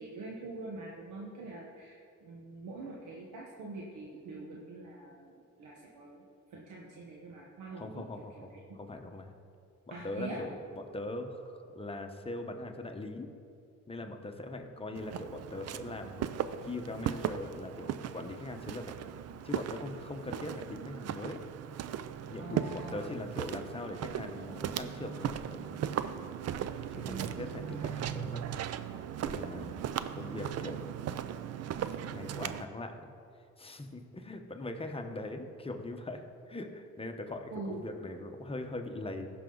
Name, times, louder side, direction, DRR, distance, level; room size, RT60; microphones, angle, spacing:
voice 1, 0.0-5.3 5.6-6.2 6.5-8.0 9.9-10.4 22.4-23.1 26.9-27.9 37.5-37.8, right 3 dB, 85° right, -2 dB, 1.2 m, -44 dB
voice 2, 7.8-9.3 9.9-13.3 13.9-18.9 19.4-21.4 22.3-25.8 26.9-28.4 29.2-29.8 30.1-30.9 31.9-33.0 33.6-39.3, left 2 dB, 20° left, 4 dB, 1.0 m, -41 dB
Walk footsteps, 15.0-32.7, right 9 dB, 55° right, 0.5 m, -37 dB
15.0 x 5.9 x 3.9 m, 2.4 s
cardioid pair, 90°, 30 cm